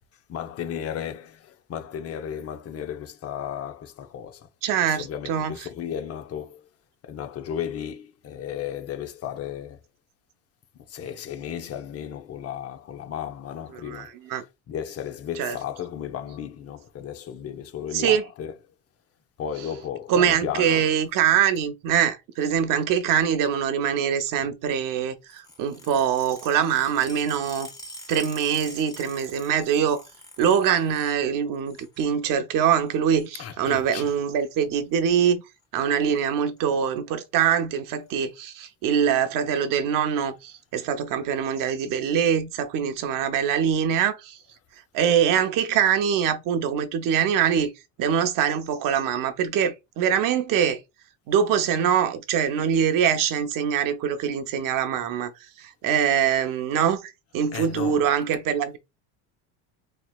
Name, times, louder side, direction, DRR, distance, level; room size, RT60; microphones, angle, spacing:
voice 1, 0.3-4.5 4.8-6.7 7.0-9.8 10.9-18.5 19.4-20.9 33.4-34.1 57.5-58.1, left 9 dB, 40° left, 0.7 m, -34 dB
voice 2, 4.6-5.5 13.8-14.4 15.4-15.6 17.9-18.2 20.1-27.7 28.1-30.0 30.4-35.4 35.7-44.4 44.9-47.7 48.0-50.8 51.3-55.3 55.6-58.8, right 8 dB, 55° right, 0.9 m, -23 dB
sound 1, 25.3-31.2 31.5-32.1 32.8-33.3 34.4-34.6 35.6-35.9 36.2-36.3 36.6-36.7 37.0-37.4 38.1-38.2 39.1-39.2, left 1 dB, 10° left, 1.4 m, -45 dB
4.1 x 3.1 x 2.4 m
cardioid pair, 120°, 38 cm